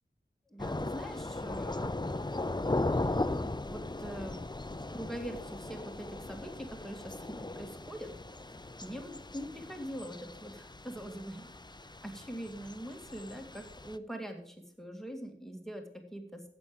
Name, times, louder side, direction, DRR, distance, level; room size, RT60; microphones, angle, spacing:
voice 1, 0.5-2.6 3.7-4.5 4.9-8.1 8.8-11.5 12.0-16.4, equal, ahead, 4 dB, 2.2 m, -43 dB
Thunder / Rain, 0.6-14.0, left 2 dB, 20° left, 0.6 m, -38 dB
11.0 x 8.6 x 5.2 m, 0.63 s
wide cardioid pair, 45°, 20 cm